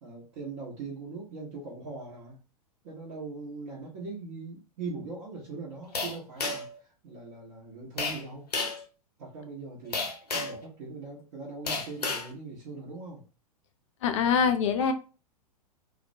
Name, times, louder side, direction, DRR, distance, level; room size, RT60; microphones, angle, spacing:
voice 1, 0.0-2.4 2.8-8.5 9.2-13.3, right 3 dB, 45° right, -6 dB, 0.9 m, -41 dB
sound 1, 5.9-6.8 8.0-8.2 8.5-8.8 9.9-10.6 11.7-12.3, left 3 dB, 80° left, 0.8 m, -31 dB
voice 2, 14.0-14.9, left 6 dB, 50° left, 7 dB, 0.5 m, -24 dB
2.3 x 2.1 x 2.6 m, 0.34 s
figure-of-eight pair, 100°, 20 cm